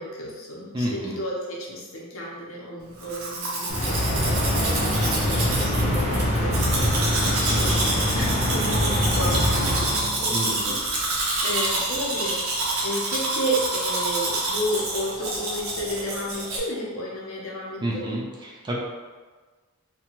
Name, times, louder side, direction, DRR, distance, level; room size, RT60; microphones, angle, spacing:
voice 1, 0.0-6.1 6.4-18.2, equal, 70° left, -4 dB, 0.7 m, -32 dB
voice 2, 0.7-1.2 5.6-6.2 10.3-10.8 17.8-18.7, right 1 dB, 20° right, -3 dB, 0.3 m, -31 dB
Domestic sounds home sounds, 3.0-16.6, right 2 dB, 85° right, 0.6 m, -28 dB
sound 1, 3.7-10.5, left 1 dB, 30° left, 0.6 m, -24 dB
2.8 x 2.2 x 2.9 m, 1.4 s
head